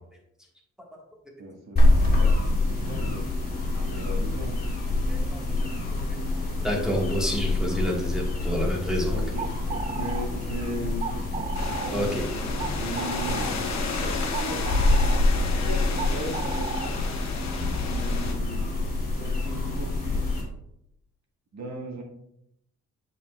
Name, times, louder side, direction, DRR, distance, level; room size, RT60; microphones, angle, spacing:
voice 1, 1.4-3.3 3.8-4.6 9.1-12.1 12.8-13.5 14.0-17.0 17.8-18.7 19.2-20.3 21.5-22.0, right 1 dB, 60° right, 0 dB, 1.7 m, -37 dB
sound 1, 1.8-20.4, left 2 dB, 30° left, 2.3 m, -26 dB
voice 2, 5.1-5.5 5.9-9.2 11.9-12.2, equal, ahead, -2 dB, 1.6 m, -29 dB
sound 2, 9.2-18.0, right 6 dB, 25° right, 0.3 m, -37 dB
sound 3, 11.5-18.3, left 4 dB, 60° left, 1.0 m, -34 dB
7.0 x 6.9 x 2.4 m, 0.78 s
wide cardioid pair, 130°, 31 cm